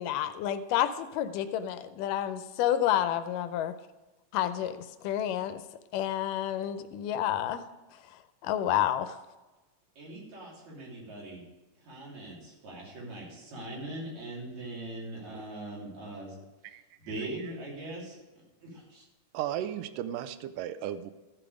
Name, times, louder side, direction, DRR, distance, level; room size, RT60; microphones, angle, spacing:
voice 1, 0.0-3.7 4.3-4.8 5.0-5.6 5.9-7.6 8.4-9.2, left 11 dB, 90° left, 11 dB, 2.3 m, -29 dB
voice 2, 10.0-11.4 11.9-16.4 17.1-18.2 18.6-19.0, right 1 dB, 60° right, -4 dB, 4.4 m, -41 dB
voice 3, 16.7-17.5 19.3-21.1, right 11 dB, 90° right, 12 dB, 2.3 m, -36 dB
14.0 x 7.0 x 4.9 m, 1.2 s
omnidirectional pair, 3.7 m